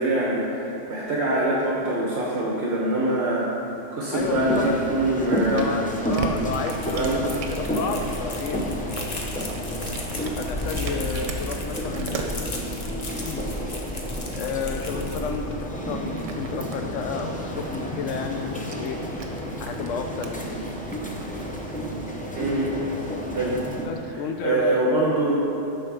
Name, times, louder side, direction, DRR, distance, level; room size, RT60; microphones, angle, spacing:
voice 1, 0.0-3.5 3.9-5.7 6.9-7.3 22.3-22.7 23.3-23.6 24.4-25.5, right 1 dB, 65° right, -4 dB, 1.2 m, -24 dB
voice 2, 4.1-4.7 5.4-8.6 10.4-12.6 13.2-13.4 14.3-19.0 19.6-20.5 23.8-24.8, left 5 dB, 85° left, 5 dB, 0.9 m, -31 dB
sound 1, 4.1-23.8, equal, 10° left, 0.5 m, -31 dB
Cat, 4.9-22.0, right 3 dB, 85° right, 1.1 m, -39 dB
sound 2, 6.3-15.7, left 1 dB, 40° left, 0.9 m, -35 dB
9.0 x 3.9 x 6.0 m, 3.0 s
omnidirectional pair, 1.3 m